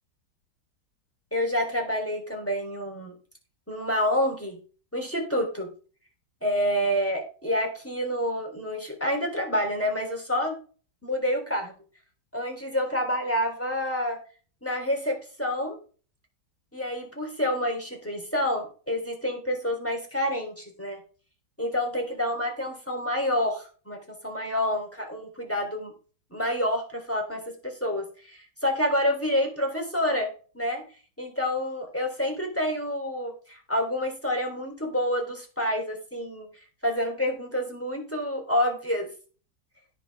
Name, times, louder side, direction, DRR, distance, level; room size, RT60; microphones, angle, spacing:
voice 1, 1.3-3.1 3.7-4.6 4.9-5.7 6.4-10.5 11.0-11.7 12.3-14.2 14.6-15.7 16.7-21.0 21.6-24.0 24.2-25.9 26.3-27.5 27.8-30.8 31.2-36.5 36.8-39.1, left 1 dB, 5° left, 2 dB, 3.6 m, -28 dB
17.0 x 6.1 x 3.6 m, 0.38 s
omnidirectional pair, 1.9 m